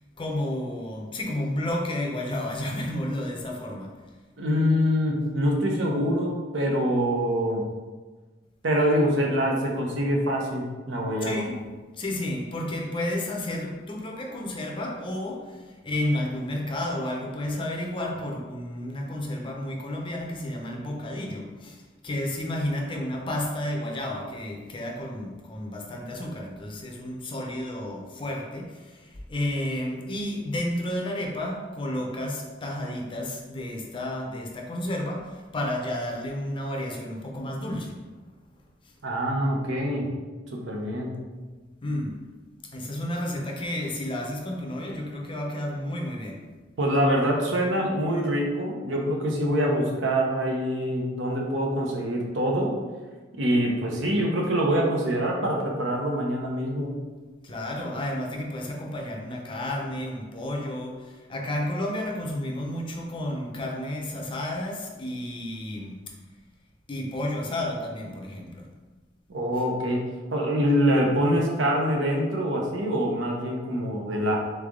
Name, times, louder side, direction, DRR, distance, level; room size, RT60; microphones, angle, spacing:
voice 1, 0.2-3.9 11.2-11.6 12.0-15.5 15.8-21.8 22.0-28.7 29.3-35.3 35.5-38.0 41.8-42.1 42.7-46.4 57.4-61.0 61.3-66.0 66.9-68.6, left 1 dB, 25° left, 0 dB, 0.5 m, -31 dB
voice 2, 4.4-7.7 8.6-11.4 39.0-40.1 40.5-41.2 46.8-52.7 53.3-56.9 69.3-74.4, equal, 90° right, 0 dB, 0.8 m, -25 dB
3.7 x 3.3 x 3.6 m, 1.3 s
head